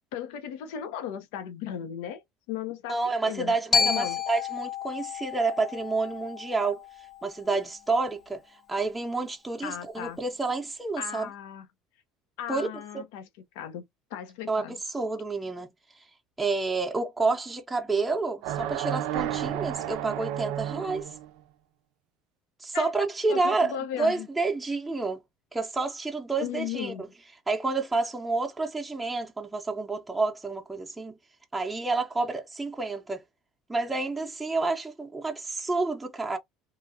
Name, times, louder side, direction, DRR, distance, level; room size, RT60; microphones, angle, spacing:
voice 1, 0.1-2.2 2.5-3.0 3.2-4.2 9.6-10.2 11.0-11.7 12.4-13.3 13.5-13.8 14.1-14.8 22.7-22.9 23.3-24.3 26.4-27.0, left 9 dB, 80° left, 0.6 m, -36 dB
voice 2, 2.9-6.8 7.2-11.3 12.5-12.7 12.9-13.0 14.5-15.7 16.4-21.1 22.6-25.2 25.5-27.1 27.5-31.2 31.5-33.2 33.7-36.4, right 3 dB, 10° right, 0.6 m, -29 dB
Glockenspiel, 3.7-7.8, left 6 dB, 35° left, 0.6 m, -31 dB
sound 1, 18.4-21.3, right 11 dB, 75° right, 0.4 m, -32 dB
3.0 x 2.3 x 2.6 m
supercardioid pair, 115°, 0 cm